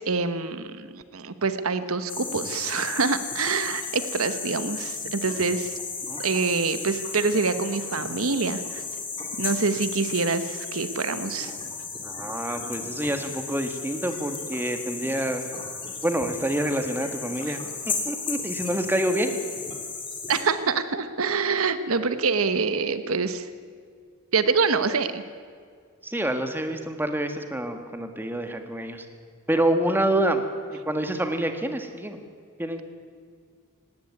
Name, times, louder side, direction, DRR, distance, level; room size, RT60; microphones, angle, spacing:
voice 1, 0.0-5.8 6.2-8.8 9.4-11.6 20.3-23.5 24.3-25.2, right 4 dB, 75° right, 11 dB, 1.1 m, -26 dB
sound 1, 2.1-20.4, left 4 dB, 25° left, 3.4 m, -34 dB
voice 2, 12.0-15.5 16.0-17.6 17.9-19.3 26.0-29.1 29.5-30.4 30.7-32.2 32.6-32.8, right 1 dB, 10° right, 6 dB, 1.7 m, -27 dB
19.0 x 17.5 x 9.6 m, 2.1 s
head